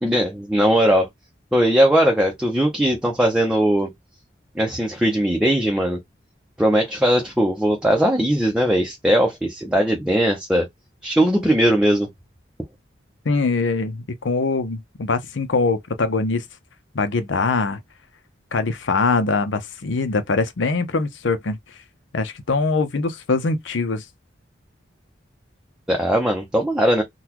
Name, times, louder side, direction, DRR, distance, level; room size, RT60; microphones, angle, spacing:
voice 1, 0.0-1.1 1.5-3.9 4.6-6.0 6.6-10.7 11.0-12.1 25.9-27.0, equal, 5° right, 0.6 m, -19 dB
voice 2, 13.2-16.4 16.9-17.8 18.5-21.6 22.1-24.0, left 3 dB, 85° left, 0.7 m, -22 dB
3.9 x 2.3 x 2.9 m
head